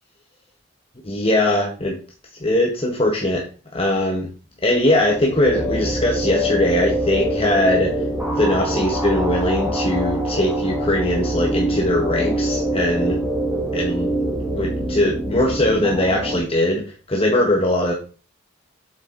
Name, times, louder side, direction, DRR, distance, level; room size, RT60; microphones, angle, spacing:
voice 1, 1.0-2.0 2.4-3.5 3.7-4.3 4.6-7.9 8.3-13.2 13.7-14.1 14.5-17.9, left 1 dB, 30° left, -1 dB, 1.4 m, -20 dB
sound 1, 4.8-16.4, right 1 dB, 5° right, 3.0 m, -24 dB
8.3 x 6.9 x 3.9 m, 0.36 s
head